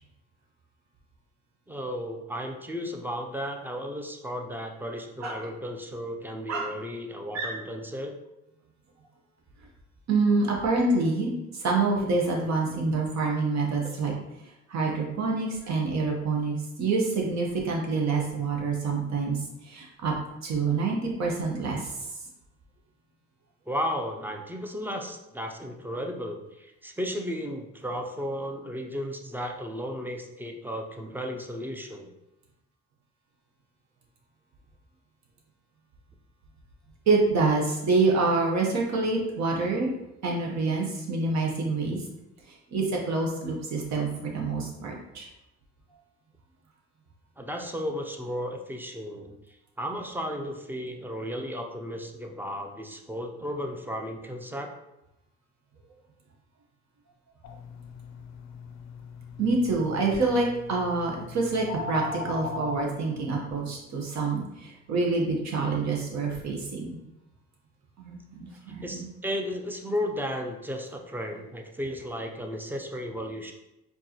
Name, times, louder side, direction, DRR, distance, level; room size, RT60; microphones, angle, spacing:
voice 1, 1.7-8.1 23.7-32.1 47.4-49.4 49.8-54.7 68.8-73.5, equal, 5° right, 3 dB, 0.5 m, -34 dB
voice 2, 10.1-14.1 14.7-20.2 20.4-21.9 37.1-39.9 40.2-42.0 42.7-45.3 59.4-67.0 68.0-69.1, right 3 dB, 65° right, 0 dB, 1.1 m, -27 dB
sound 1, 57.4-62.8, left 4 dB, 65° left, 0.5 m, -39 dB
4.4 x 2.7 x 2.9 m, 0.90 s
cardioid pair, 90°, 30 cm